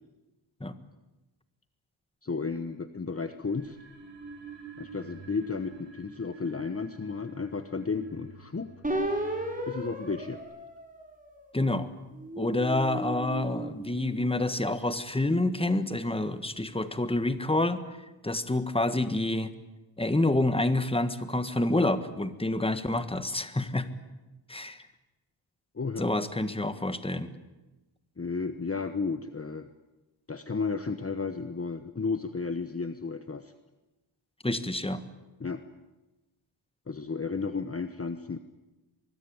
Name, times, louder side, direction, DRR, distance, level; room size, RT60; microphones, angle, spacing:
voice 1, 2.2-3.8 4.8-8.7 9.7-10.4 25.7-26.1 28.2-29.7 30.3-33.5 35.4-35.6 36.9-38.4, left 4 dB, 30° left, 10 dB, 1.1 m, -33 dB
sound 1, 3.5-10.4, right 5 dB, 60° right, 7.2 m, -49 dB
sound 2, 8.8-11.5 12.1-14.6, right 1 dB, 15° right, 5.6 m, -35 dB
voice 2, 11.5-11.9 12.4-17.8 18.2-19.5 20.0-23.9 24.5-24.8 26.0-27.3 34.4-35.0, left 2 dB, 10° left, 11 dB, 1.6 m, -28 dB
24.0 x 21.5 x 8.9 m, 1.1 s
wide cardioid pair, 105°, 49 cm